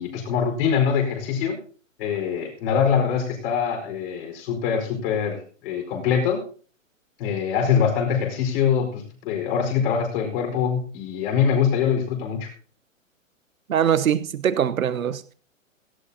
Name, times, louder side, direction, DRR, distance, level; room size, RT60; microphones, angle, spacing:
voice 1, 0.0-1.6 2.0-6.4 7.2-12.5, left 7 dB, 45° left, 4.7 m, -23 dB
voice 2, 13.7-15.3, right 9 dB, 85° right, 1.1 m, -22 dB
17.5 x 15.5 x 2.8 m
hypercardioid pair, 130°, 40 cm